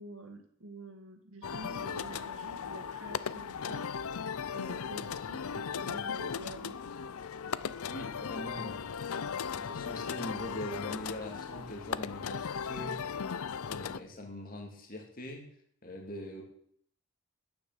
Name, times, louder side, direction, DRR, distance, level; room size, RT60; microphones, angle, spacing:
voice 1, 0.0-3.9 4.5-6.8, right 1 dB, 75° right, 5 dB, 2.0 m, -48 dB
sound 1, 1.4-14.0, left 6 dB, 85° left, 0.5 m, -37 dB
Wind instrument woodwind instrument, 5.8-8.4 8.9-12.7, left 3 dB, 60° left, 0.9 m, -53 dB
voice 2, 7.9-8.8 9.5-13.0 13.6-15.5 15.8-16.4, left 1 dB, 40° left, 1 dB, 2.3 m, -42 dB
10.5 x 9.5 x 7.3 m, 0.66 s
head